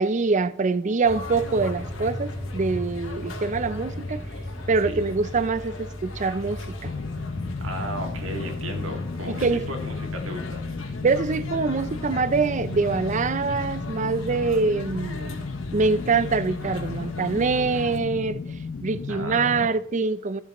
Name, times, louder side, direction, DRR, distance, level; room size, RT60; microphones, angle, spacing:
voice 1, 0.0-4.2 4.7-6.9 9.3-9.6 11.0-15.4 15.7-18.4 18.8-20.4, right 4 dB, 35° right, 0.5 m, -24 dB
sound 1, 1.0-18.0, left 1 dB, 75° left, 1.8 m, -37 dB
sound 2, 1.3-13.7, left 1 dB, 15° left, 2.4 m, -40 dB
sound 3, 6.8-19.7, left 4 dB, 40° left, 0.3 m, -34 dB
voice 2, 7.6-10.6 19.1-19.7, right 1 dB, 80° right, 2.1 m, -35 dB
14.5 x 7.4 x 3.0 m
head